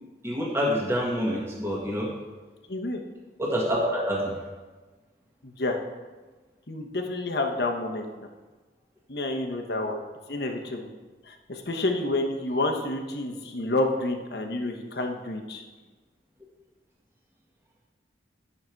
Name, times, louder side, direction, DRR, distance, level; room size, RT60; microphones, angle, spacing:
voice 1, 0.2-2.1 3.4-4.3, equal, 15° right, -3 dB, 1.7 m, -27 dB
voice 2, 2.7-3.0 5.4-5.8 6.7-8.1 9.1-10.0 10.3-10.9 11.3-15.6, left 2 dB, 60° left, 3 dB, 1.1 m, -29 dB
10.0 x 6.7 x 4.6 m, 1.3 s
head